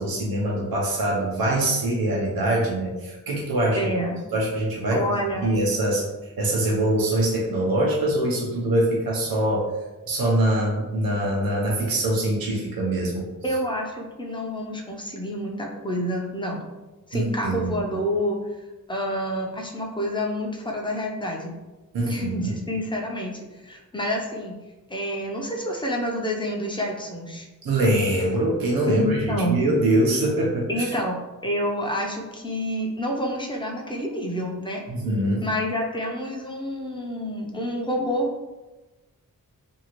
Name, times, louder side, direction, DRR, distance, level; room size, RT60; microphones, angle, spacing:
voice 1, 0.0-3.9 4.3-5.0 5.4-6.0 6.4-9.7 10.1-13.3 17.1-17.7 21.9-22.5 27.6-30.8 34.9-35.4, right 1 dB, 80° right, -3 dB, 0.7 m, -23 dB
voice 2, 3.8-4.2 4.9-5.5 13.4-16.6 17.1-18.5 18.9-21.5 22.1-24.6 24.9-27.5 28.9-29.6 30.7-34.8 35.4-38.3, equal, 15° left, -1 dB, 0.6 m, -28 dB
2.7 x 2.4 x 2.9 m, 1.1 s
cardioid pair, 60°, 35 cm